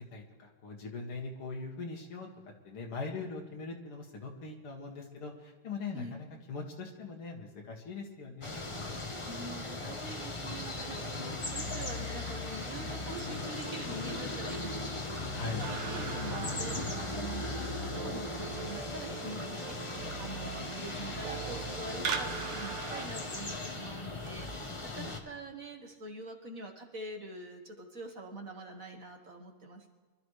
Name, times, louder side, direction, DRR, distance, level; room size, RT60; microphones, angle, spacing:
voice 1, 0.1-2.3 2.6-8.6 11.1-11.4 15.3-15.6 24.9-25.1, left 4 dB, 85° left, 1 dB, 2.9 m, -41 dB
sound 1, 8.4-25.2, left 2 dB, 20° left, 0.8 m, -38 dB
voice 2, 9.2-29.9, right 2 dB, 45° right, 3 dB, 1.7 m, -45 dB
sound 2, 15.6-23.1, right 6 dB, 90° right, 2.0 m, -41 dB
24.5 x 13.0 x 3.3 m, 1.3 s
omnidirectional pair, 2.3 m